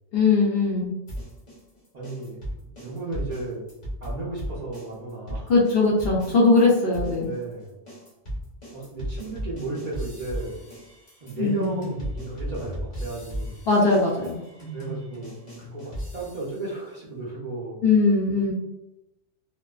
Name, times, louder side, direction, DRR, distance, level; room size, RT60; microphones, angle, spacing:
voice 1, 0.1-0.9 5.5-7.3 11.4-11.8 13.7-14.4 17.8-18.5, left 3 dB, 65° left, -4 dB, 0.8 m, -20 dB
sound 1, 1.1-6.7 6.9-16.7, equal, 40° left, 0.9 m, -36 dB
voice 2, 1.9-2.4 2.8-3.6 4.0-5.5 7.2-7.7 8.7-10.7 11.2-13.6 14.7-17.8, right 2 dB, 50° right, -8 dB, 0.5 m, -34 dB
2.4 x 2.3 x 2.2 m, 0.94 s
omnidirectional pair, 1.2 m